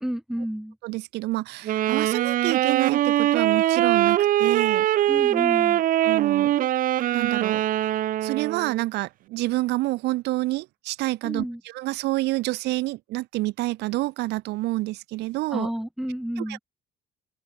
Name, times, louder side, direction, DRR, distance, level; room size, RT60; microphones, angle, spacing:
voice 1, 0.0-0.8 5.1-5.8 11.2-11.6 15.5-16.6, equal, ahead, 0.5 m, -30 dB
voice 2, 0.8-4.9 6.0-6.5 7.1-7.6 8.2-15.7 16.4-16.6, right 19 dB, 80° right, 0.8 m, -28 dB
Wind instrument woodwind instrument, 1.7-8.8, right 13 dB, 55° right, 0.5 m, -22 dB
open air
cardioid pair, 110°, 17 cm